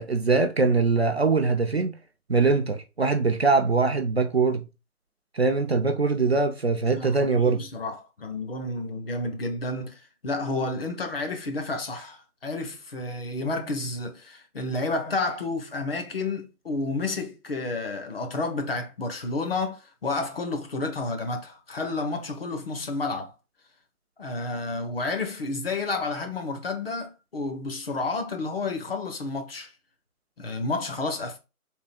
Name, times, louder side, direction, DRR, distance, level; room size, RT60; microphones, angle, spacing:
voice 1, 0.0-1.9 2.3-4.6 5.4-7.6, right 4 dB, 45° right, 0.4 m, -22 dB
voice 2, 6.9-23.3 24.2-29.7 30.4-31.4, left 3 dB, 40° left, 0.8 m, -30 dB
3.7 x 2.6 x 4.1 m
figure-of-eight pair, 155°, 45 cm